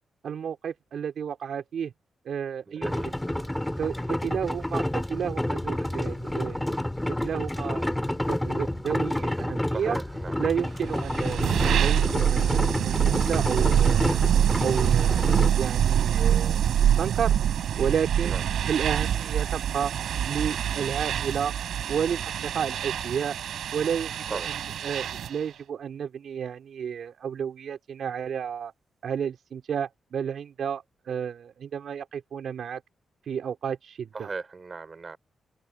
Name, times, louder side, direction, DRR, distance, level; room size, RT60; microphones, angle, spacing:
voice 1, 0.2-1.9 2.2-2.9 3.8-6.7 7.2-10.0 10.4-14.2 14.6-17.3 17.8-18.3 18.7-19.9 20.3-21.5 21.9-23.4 23.7-24.5 24.8-28.7 29.0-32.8 33.3-34.3, right 7 dB, 65° right, 2.9 m, -32 dB
voice 2, 2.7-3.1 9.7-10.4 18.2-18.4 24.3-24.5 34.1-35.2, right 4 dB, 30° right, 5.4 m, -37 dB
sound 1, 2.8-15.5, left 1 dB, 5° left, 2.8 m, -29 dB
sound 2, 5.1-16.2, left 9 dB, 85° left, 6.1 m, -53 dB
sound 3, 10.8-25.4, right 9 dB, 90° right, 3.3 m, -25 dB
open air
wide cardioid pair, 135°, 0 cm